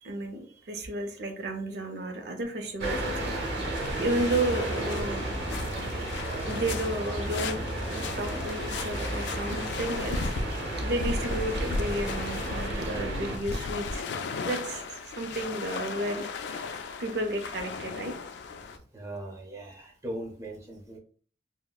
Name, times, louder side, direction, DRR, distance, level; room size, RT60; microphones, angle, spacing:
voice 1, 0.0-5.2 5.6-5.9 6.5-10.4 10.8-14.0 14.4-18.1, right 1 dB, 65° right, 4 dB, 0.5 m, -33 dB
sound 1, 2.8-13.4, right 1 dB, 85° right, 0.9 m, -33 dB
sound 2, 3.7-18.8, left 3 dB, 75° left, 0.3 m, -36 dB
voice 2, 18.9-21.0, right 1 dB, 20° right, -1 dB, 0.6 m, -39 dB
3.6 x 2.0 x 2.2 m, 0.43 s
head